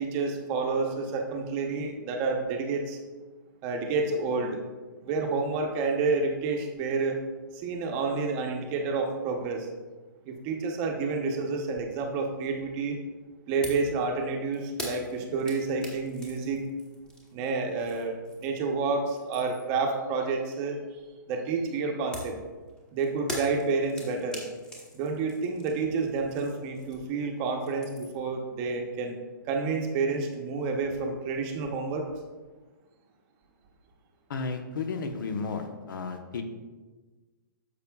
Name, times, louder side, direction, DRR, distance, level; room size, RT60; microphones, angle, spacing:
voice 1, 0.0-3.0 3.6-4.6 5.0-7.2 7.5-9.7 10.3-13.0 13.5-16.6 17.3-18.2 18.4-20.8 21.3-22.4 22.9-24.4 24.9-29.2 29.5-32.1, right 4 dB, 25° right, 2 dB, 0.8 m, -29 dB
sound 1, 13.6-13.9 14.2-18.7 19.0-19.8 22.1-27.2 27.5-28.3, equal, 5° left, 1.0 m, -42 dB
voice 2, 34.3-36.4, left 4 dB, 70° left, 6 dB, 1.0 m, -33 dB
10.0 x 6.9 x 2.3 m, 1.3 s
hypercardioid pair, 165°, 11 cm